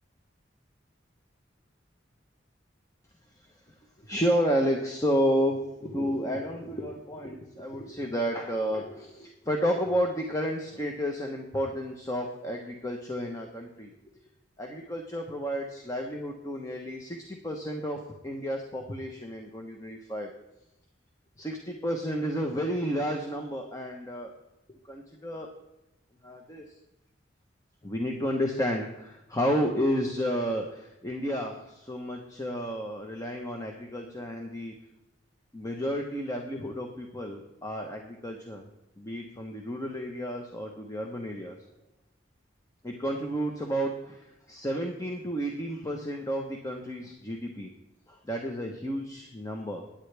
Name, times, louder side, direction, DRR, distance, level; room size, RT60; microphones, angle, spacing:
voice 1, 3.7-13.9 14.6-20.3 21.4-24.3 24.7-25.5 26.2-26.7 27.8-34.7 35.5-38.7 39.0-41.6 42.8-47.7 48.1-49.9, equal, 20° left, 2 dB, 1.1 m, -31 dB
16.5 x 10.0 x 3.4 m, 0.92 s
head